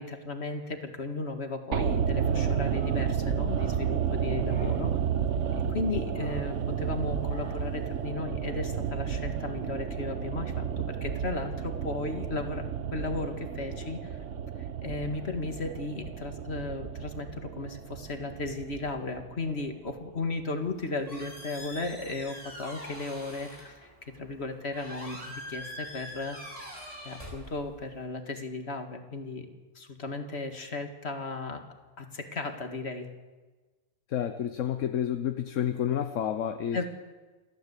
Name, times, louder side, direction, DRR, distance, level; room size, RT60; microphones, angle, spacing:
voice 1, 0.0-4.9 5.7-12.6 12.9-14.1 14.8-23.9 24.1-26.4 27.0-29.5 29.8-31.6 32.0-33.1 36.7-36.8, left 3 dB, 55° left, 6 dB, 2.3 m, -35 dB
sound 1, 1.7-19.9 20.2-20.3, right 7 dB, 70° right, 1.3 m, -31 dB
sound 2, 1.8-4.2 4.5-5.0 6.1-6.7 7.3-7.8, equal, 5° left, 2.8 m, -52 dB
Squeak, 20.6-28.0, equal, 25° right, 7.3 m, -44 dB
voice 2, 34.1-36.8, left 9 dB, 75° left, 9 dB, 1.2 m, -30 dB
28.0 x 13.5 x 8.3 m, 1.3 s
omnidirectional pair, 1.3 m